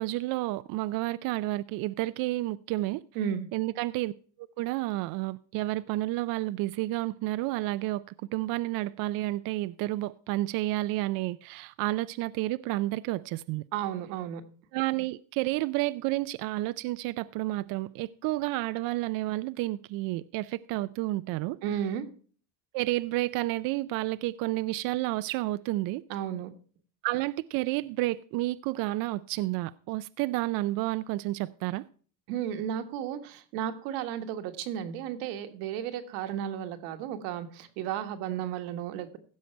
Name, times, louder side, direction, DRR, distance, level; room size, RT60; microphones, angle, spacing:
voice 1, 0.0-3.0 3.5-4.1 4.6-8.0 8.3-13.6 14.7-21.6 22.7-26.0 27.0-31.8, right 18 dB, 55° right, 0.5 m, -30 dB
voice 2, 3.1-3.5 13.7-14.4 21.6-22.1 26.1-26.5 32.3-39.2, right 9 dB, 80° right, 1.5 m, -33 dB
16.0 x 6.4 x 4.4 m
cardioid pair, 130°, 40 cm